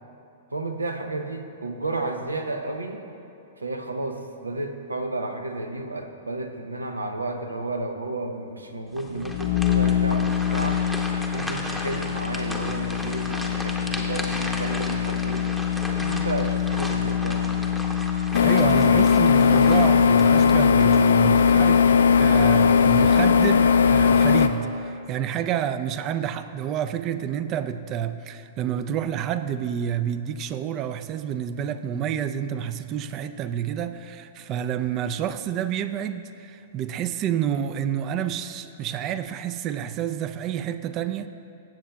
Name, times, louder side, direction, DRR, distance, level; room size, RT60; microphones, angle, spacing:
voice 1, 0.5-3.0 3.6-10.8 11.3-15.6 15.9-17.5, right 2 dB, 90° right, 5 dB, 0.6 m, -32 dB
sound 1, 8.9-21.6 22.0-22.2 22.8-23.3, equal, 5° right, 0.8 m, -36 dB
sound 2, 9.1-19.0, left 10 dB, 35° left, 0.6 m, -26 dB
sound 3, 18.3-24.5, left 6 dB, 70° left, 0.4 m, -17 dB
voice 2, 18.4-41.3, right 9 dB, 35° right, 12 dB, 0.4 m, -29 dB
14.5 x 7.3 x 2.3 m, 2.8 s
figure-of-eight pair, 110°, 0 cm